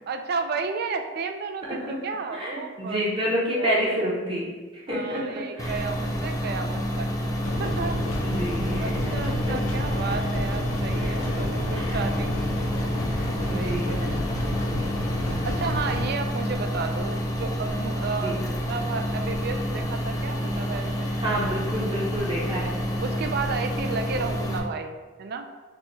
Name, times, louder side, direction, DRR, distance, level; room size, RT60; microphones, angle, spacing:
voice 1, 0.1-3.2 3.5-4.0 4.9-7.1 7.6-8.2 8.8-12.4 13.4-14.2 15.4-21.5 22.6-22.7 23.0-25.5, right 4 dB, 50° right, 6 dB, 0.3 m, -33 dB
voice 2, 2.3-5.2 5.6-5.8 8.2-9.1 11.0-11.3 11.7-12.0 13.1-13.2 13.5-14.0 15.2-15.4 18.2-18.4 21.2-22.7, equal, 25° right, -5 dB, 0.8 m, -29 dB
sound 1, 5.6-24.6, equal, 15° left, 0.5 m, -28 dB
sound 2, 7.4-16.0, left 1 dB, 85° left, 0.6 m, -31 dB
5.9 x 2.2 x 3.1 m, 1.3 s
head